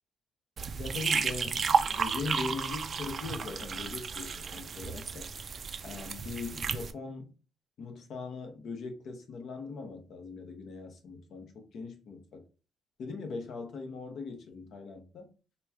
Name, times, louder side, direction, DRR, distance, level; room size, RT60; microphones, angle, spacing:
sound 1, 0.6-6.9, right 5 dB, 45° right, 0.4 m, -32 dB
voice 1, 0.7-5.3 5.8-7.3 7.8-12.5 13.0-15.3, left 4 dB, 65° left, 1.0 m, -40 dB
4.2 x 2.2 x 3.5 m
cardioid pair, 90°, 0 cm